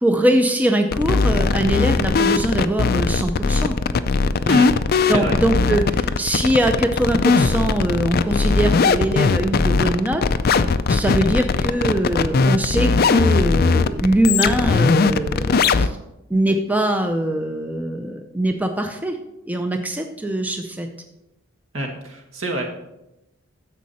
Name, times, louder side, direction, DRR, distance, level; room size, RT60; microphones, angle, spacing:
voice 1, 0.0-3.8 4.4-4.6 5.1-10.2 10.9-16.0 16.3-19.2 19.5-20.9, right 1 dB, 5° right, 5 dB, 0.5 m, -22 dB
sound 1, 0.9-15.9, left 4 dB, 45° left, 0.4 m, -19 dB
voice 2, 5.0-5.4 21.7-22.7, right 1 dB, 70° right, 2 dB, 1.9 m, -27 dB
10.5 x 7.4 x 4.2 m, 0.90 s
head